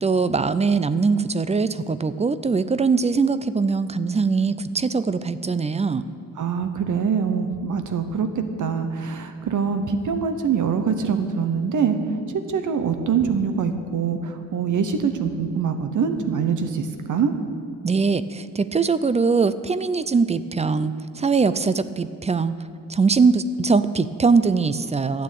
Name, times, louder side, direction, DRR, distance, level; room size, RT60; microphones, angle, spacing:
voice 1, 0.0-6.0 17.8-22.5 22.9-25.2, right 4 dB, 20° right, 14 dB, 0.4 m, -21 dB
voice 2, 6.4-17.3, right 6 dB, 70° right, 8 dB, 1.0 m, -24 dB
13.0 x 8.9 x 8.4 m, 2.4 s
wide cardioid pair, 150°, 32 cm